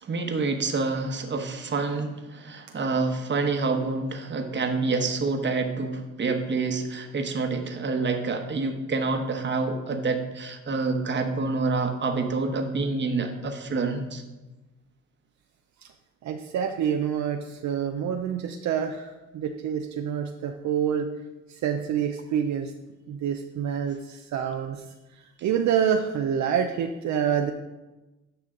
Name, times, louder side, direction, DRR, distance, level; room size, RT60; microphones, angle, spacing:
voice 1, 0.0-14.2, right 3 dB, 40° right, 5 dB, 1.1 m, -27 dB
voice 2, 16.2-21.1 21.5-22.7 23.1-24.8 25.1-27.5, right 8 dB, 65° right, 4 dB, 0.6 m, -27 dB
9.8 x 5.7 x 3.8 m, 1.1 s
cardioid pair, 90°, 30 cm